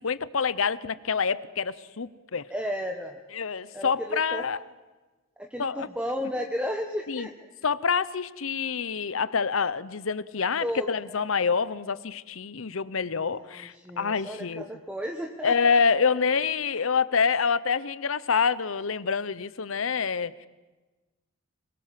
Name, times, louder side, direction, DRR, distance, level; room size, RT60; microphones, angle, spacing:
voice 1, 0.0-2.5 3.3-4.6 5.6-5.9 7.1-7.3 7.6-14.7 15.4-20.5, left 5 dB, 75° left, 17 dB, 0.8 m, -27 dB
voice 2, 2.5-3.2 3.7-4.5 5.4-7.3 10.6-11.2 13.4-16.1, equal, 5° right, 2 dB, 1.2 m, -34 dB
25.5 x 23.0 x 7.6 m, 1.2 s
head